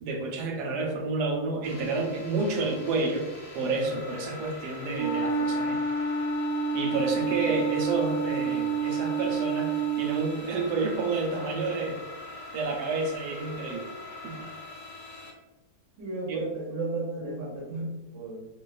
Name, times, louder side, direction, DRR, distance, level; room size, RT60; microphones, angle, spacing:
voice 1, 0.0-5.8 6.7-12.0 12.5-13.9 14.2-14.5 16.3-16.5, right 3 dB, 85° right, 2 dB, 1.2 m, -30 dB
sound 1, 1.6-15.3, left 3 dB, 65° left, 0.8 m, -43 dB
Wind instrument woodwind instrument, 4.9-10.3, right 4 dB, 40° right, 0.4 m, -28 dB
voice 2, 7.2-7.5 16.0-18.5, right 3 dB, 60° right, -5 dB, 0.9 m, -34 dB
2.5 x 2.3 x 2.3 m, 1.1 s
omnidirectional pair, 1.7 m